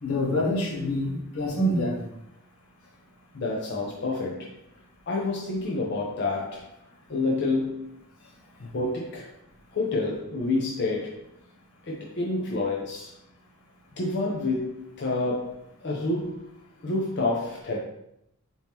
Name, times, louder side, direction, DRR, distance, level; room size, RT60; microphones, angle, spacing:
voice 1, 0.0-2.1, left 1 dB, 90° left, -3 dB, 1.3 m, -26 dB
voice 2, 3.3-4.5 5.1-6.7 7.1-7.9 8.6-9.3 9.7-11.3 11.8-13.1 14.0-16.5 16.8-17.8, left 2 dB, 50° left, -2 dB, 0.6 m, -28 dB
4.4 x 2.8 x 3.5 m, 0.80 s
head